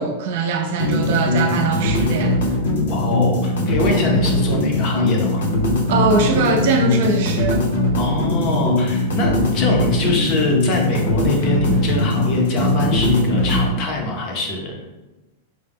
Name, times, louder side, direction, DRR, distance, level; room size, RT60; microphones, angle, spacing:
voice 1, 0.0-2.4 5.9-7.7, right 4 dB, 50° right, 4 dB, 0.5 m, -21 dB
sound 1, 0.8-13.7, left 1 dB, 75° left, 0.8 m, -20 dB
voice 2, 2.9-5.5 8.0-14.8, left 2 dB, 30° left, 1 dB, 0.6 m, -24 dB
4.7 x 2.1 x 3.4 m, 1.1 s
supercardioid pair, 175°, 0 cm